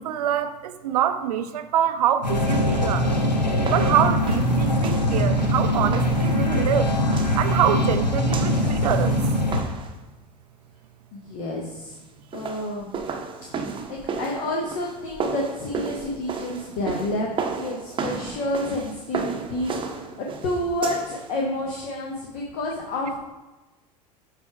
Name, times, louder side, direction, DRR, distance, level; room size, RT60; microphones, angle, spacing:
voice 1, 0.0-3.1 3.7-6.9 7.4-9.2, right 10 dB, 65° right, 10 dB, 0.6 m, -25 dB
sound 1, 2.2-9.6, left 1 dB, 90° left, 0.7 m, -22 dB
sound 2, 2.5-10.0 12.1-21.3, right 5 dB, 25° right, 0.8 m, -34 dB
voice 2, 11.1-12.0 12.3-13.2 13.9-17.3 17.6-23.3, left 1 dB, 50° left, -1 dB, 1.1 m, -29 dB
7.9 x 3.4 x 4.7 m, 1.1 s
figure-of-eight pair, 75°, 21 cm